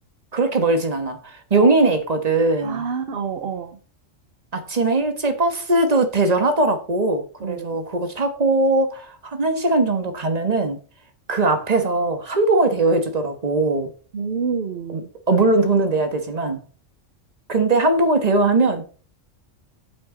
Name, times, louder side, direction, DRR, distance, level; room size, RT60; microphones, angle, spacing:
voice 1, 0.3-2.8 4.5-10.8 11.3-13.9 14.9-16.6 17.5-18.8, right 2 dB, 30° right, 1.4 m, -20 dB
voice 2, 2.6-3.8 7.4-7.8 14.1-15.1, right 6 dB, 50° right, 1.0 m, -28 dB
8.6 x 8.0 x 3.8 m
omnidirectional pair, 1.3 m